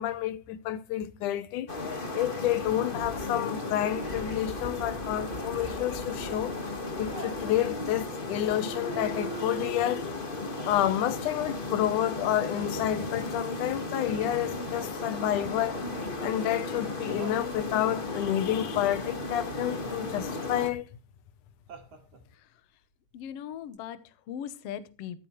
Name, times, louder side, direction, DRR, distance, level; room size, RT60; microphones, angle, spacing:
voice 1, 0.0-1.7 2.1-6.5 7.0-10.1 10.6-15.8 16.2-20.9, left 12 dB, 85° left, 2.4 m, -29 dB
sound 1, 1.7-20.7, left 2 dB, 25° left, 1.1 m, -35 dB
Laughter, 6.2-7.5 8.9-9.4 10.6-11.0 12.6-13.1 15.7-16.2 17.1-17.5 19.8-20.3 21.7-22.3 23.7-23.8, right 3 dB, 55° right, 3.2 m, -46 dB
voice 2, 23.1-25.3, left 9 dB, 65° left, 1.7 m, -40 dB
14.5 x 13.5 x 3.2 m
omnidirectional pair, 3.5 m